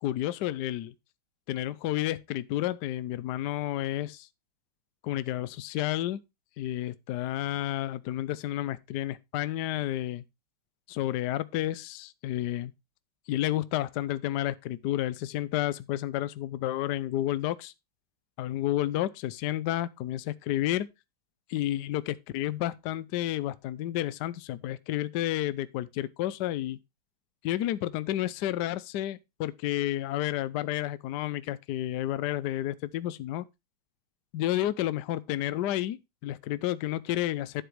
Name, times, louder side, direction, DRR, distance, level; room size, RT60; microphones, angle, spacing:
voice 1, 0.0-0.9 1.5-4.3 5.0-6.2 6.6-10.2 10.9-12.7 13.3-17.7 18.4-20.9 21.5-26.8 27.4-33.5 34.3-37.6, left 13 dB, 70° left, 1.0 m, -31 dB
10.0 x 7.8 x 3.1 m
omnidirectional pair, 2.3 m